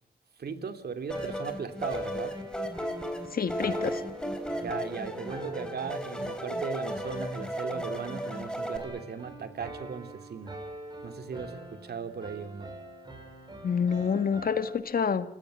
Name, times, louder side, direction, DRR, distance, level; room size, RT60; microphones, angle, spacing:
voice 1, 0.4-2.4 4.6-10.6 11.0-12.8, right 5 dB, 70° right, 8 dB, 2.9 m, -37 dB
sound 1, 1.1-8.8, equal, 5° left, 4.2 m, -35 dB
sound 2, 1.1-14.8, right 1 dB, 25° right, 7.1 m, -45 dB
voice 2, 3.3-4.0 13.6-15.3, left 6 dB, 60° left, 10 dB, 1.9 m, -27 dB
29.0 x 16.5 x 9.9 m, 0.75 s
cardioid pair, 90°, 17 cm